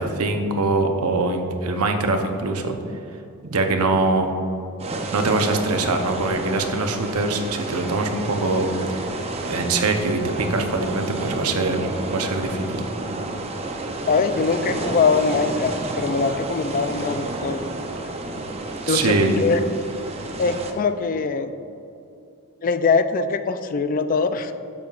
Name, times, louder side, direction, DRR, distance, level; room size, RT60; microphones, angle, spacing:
voice 1, 0.0-2.8 3.4-4.3 5.1-9.1 9.4-12.8 18.9-19.4, right 3 dB, 80° right, 4 dB, 0.8 m, -23 dB
sound 1, 4.8-20.7, right 2 dB, 30° right, 0.6 m, -30 dB
voice 2, 14.1-17.7 18.9-19.6 20.4-21.5 22.6-24.5, left 4 dB, 40° left, 10 dB, 0.3 m, -22 dB
10.5 x 7.2 x 2.4 m, 2.7 s
head